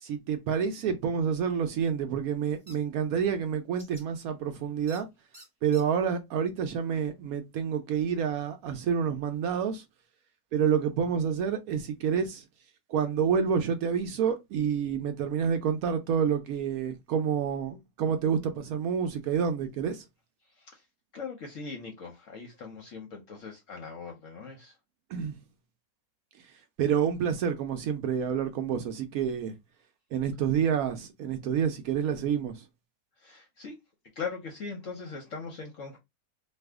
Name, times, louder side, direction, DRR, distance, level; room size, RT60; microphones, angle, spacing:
voice 1, 0.0-5.1 5.6-9.8 10.5-12.4 12.9-20.0 25.1-25.4 26.8-29.5 30.1-32.6, right 7 dB, 70° right, 0.8 m, -28 dB
sound 1, 2.7-2.8 3.8-4.0 4.9-5.0 5.3-5.8, right 2 dB, 5° left, 1.0 m, -49 dB
voice 2, 21.1-24.7 33.2-33.8 34.2-36.0, left 5 dB, 60° left, 0.9 m, -40 dB
2.6 x 2.4 x 3.4 m
omnidirectional pair, 1.9 m